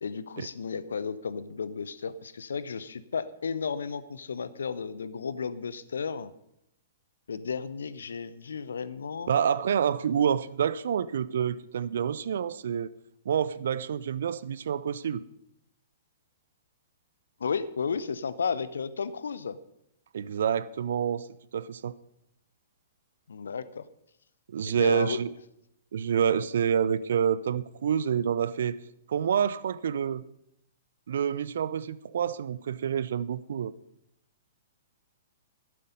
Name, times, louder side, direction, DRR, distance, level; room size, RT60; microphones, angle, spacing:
voice 1, 0.0-6.3 7.3-9.3 17.4-19.6 23.3-23.8 24.6-25.2, left 5 dB, 65° left, 0.8 m, -33 dB
voice 2, 9.3-12.9 13.3-15.2 20.1-21.3 21.5-21.9 24.5-25.3 25.9-28.8 29.1-30.2 31.1-33.7, right 8 dB, 55° right, 0.5 m, -28 dB
12.0 x 12.0 x 5.3 m
figure-of-eight pair, 110°, 0 cm